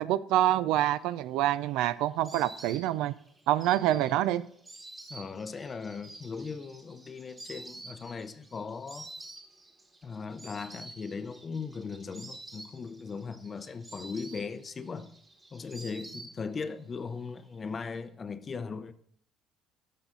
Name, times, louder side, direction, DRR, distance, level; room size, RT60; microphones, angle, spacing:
voice 1, 0.0-3.2 3.5-4.4, right 13 dB, 75° right, 0.4 m, -26 dB
Insect, 1.1-16.8 17.1-17.9, right 2 dB, 20° right, 1.4 m, -49 dB
voice 2, 5.1-9.1 10.0-15.1 15.5-18.9, left 5 dB, 25° left, 0.6 m, -38 dB
13.0 x 5.6 x 3.8 m
cardioid pair, 140°, 0 cm